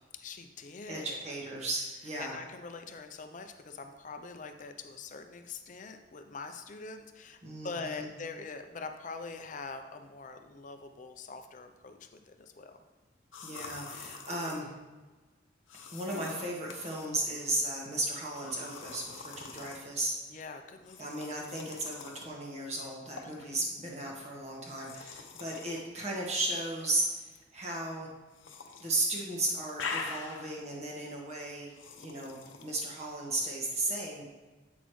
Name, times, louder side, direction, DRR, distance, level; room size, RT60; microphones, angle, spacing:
voice 1, 0.1-1.2 2.2-12.8 20.3-21.2 23.2-23.7, left 4 dB, 40° left, 7 dB, 0.5 m, -44 dB
voice 2, 0.9-2.4 7.4-8.1 13.4-14.7 15.9-20.2 21.0-28.1 28.8-34.2, right 2 dB, 35° right, -2 dB, 1.4 m, -35 dB
sound 1, 13.3-14.6 15.7-17.1 18.4-19.8 20.8-22.3 23.2-23.4 24.6-25.8 26.8-27.4 28.3-28.9 29.2-30.6 31.7-32.8, left 5 dB, 85° left, 0.7 m, -44 dB
8.1 x 6.1 x 3.1 m, 1.2 s
head